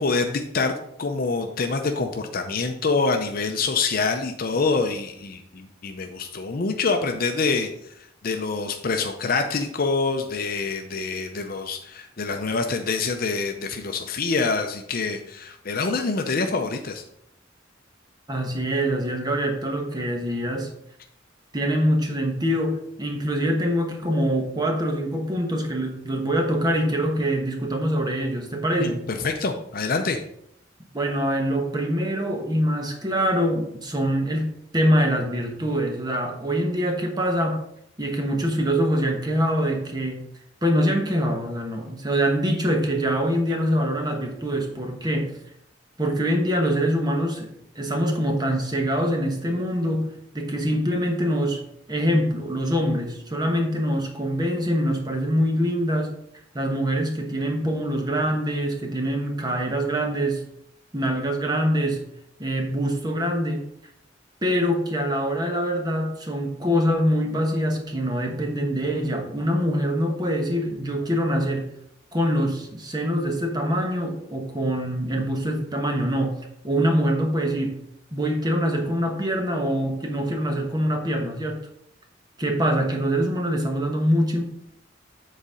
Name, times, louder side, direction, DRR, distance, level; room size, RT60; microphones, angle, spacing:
voice 1, 0.0-7.7 8.2-17.0 28.8-30.2, left 4 dB, 50° left, 5 dB, 0.6 m, -26 dB
voice 2, 18.3-20.7 21.5-29.1 30.9-37.6 38.0-40.2 40.6-45.4 46.0-51.6 51.9-56.1 56.5-60.4 60.9-62.0 62.4-63.6 64.4-71.7 72.1-76.4 76.6-77.8 78.1-81.6 82.4-84.4, equal, 20° right, 3 dB, 1.1 m, -24 dB
7.8 x 4.1 x 5.0 m, 0.73 s
head